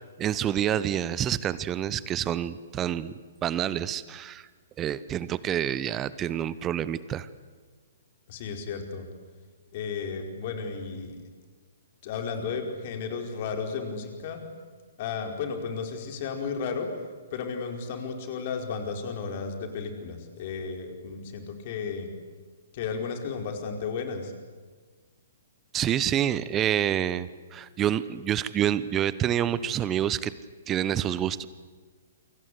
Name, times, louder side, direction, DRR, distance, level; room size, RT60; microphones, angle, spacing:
voice 1, 0.2-3.2 3.4-4.5 4.8-7.3 25.7-30.3 30.7-31.5, right 10 dB, 20° right, 17 dB, 0.9 m, -27 dB
voice 2, 8.3-9.0 9.7-11.2 12.0-14.4 15.0-16.9 17.3-22.1 22.7-24.3, left 5 dB, 40° left, 4 dB, 4.8 m, -33 dB
28.5 x 25.0 x 8.3 m, 1.5 s
figure-of-eight pair, 120°, 0 cm